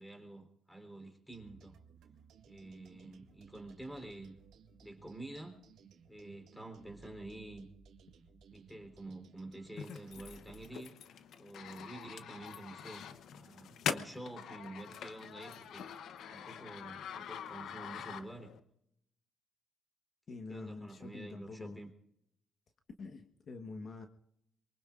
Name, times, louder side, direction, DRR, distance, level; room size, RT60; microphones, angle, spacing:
voice 1, 0.0-1.8 2.5-4.3 4.8-5.6 6.1-7.7 8.5-11.0 11.4-13.1 13.3-15.8 16.3-18.5 20.3-21.9, right 2 dB, 5° left, 5 dB, 3.6 m, -48 dB
sound 1, 1.3-10.7, right 5 dB, 80° right, 2.0 m, -60 dB
sound 2, 9.8-18.6, left 8 dB, 75° left, 0.9 m, -44 dB
voice 2, 20.3-21.8 23.0-24.1, left 3 dB, 50° left, 5 dB, 1.3 m, -46 dB
23.5 x 23.5 x 2.5 m, 0.78 s
cardioid pair, 90°, 0 cm